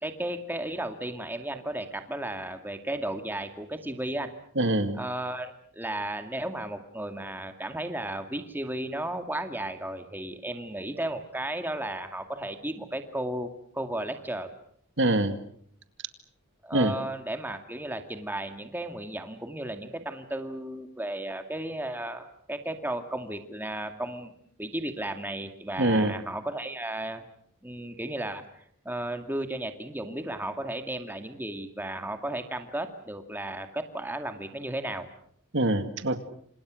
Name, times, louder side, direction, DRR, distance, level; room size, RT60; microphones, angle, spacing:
voice 1, 0.0-4.3 5.0-14.5 16.6-24.3 24.6-27.2 27.6-35.1, right 1 dB, 10° right, 7 dB, 2.2 m, -34 dB
voice 2, 4.6-5.0 15.0-15.4 16.7-17.0 25.8-26.1 35.5-36.2, right 1 dB, 60° right, 10 dB, 2.1 m, -24 dB
28.5 x 27.0 x 6.4 m, 0.65 s
head